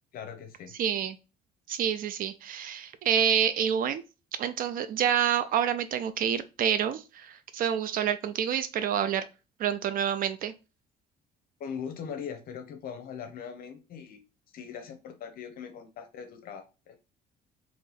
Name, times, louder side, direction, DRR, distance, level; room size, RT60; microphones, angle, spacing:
voice 1, 0.1-0.7 11.6-14.2 14.5-17.0, left 7 dB, 60° left, 7 dB, 0.7 m, -40 dB
voice 2, 0.8-1.2 1.7-4.0 4.4-9.3 9.6-10.5, right 9 dB, 55° right, 12 dB, 0.4 m, -28 dB
3.1 x 2.8 x 3.9 m, 0.30 s
cardioid pair, 110°, 17 cm